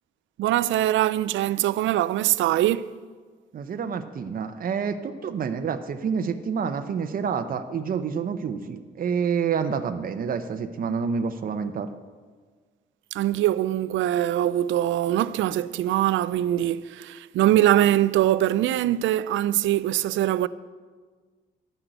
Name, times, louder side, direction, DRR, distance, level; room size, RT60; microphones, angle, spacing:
voice 1, 0.4-3.0 13.1-20.5, right 13 dB, 75° right, 0.4 m, -22 dB
voice 2, 3.5-11.9, right 6 dB, 45° right, 0.7 m, -28 dB
11.5 x 6.1 x 7.8 m
cardioid pair, 90°, 20 cm